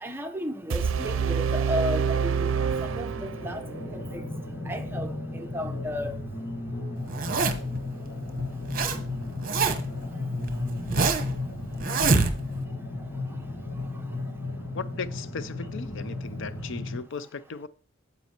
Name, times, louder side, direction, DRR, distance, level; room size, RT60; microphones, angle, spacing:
voice 1, 0.0-2.5 2.8-3.6 3.9-4.2 4.7-6.1, left 1 dB, 10° right, 0.8 m, -33 dB
sound 1, 0.7-3.7, right 6 dB, 75° right, 0.5 m, -27 dB
sound 2, 2.3-17.0, left 2 dB, 45° left, 2.4 m, -34 dB
Zipper (clothing), 7.1-7.8 8.4-9.0 9.2-10.0 10.5-11.3 11.8-12.6, right 4 dB, 45° right, 0.9 m, -25 dB
voice 2, 14.7-17.7, left 5 dB, 65° left, 0.5 m, -37 dB
9.4 x 8.1 x 2.9 m
head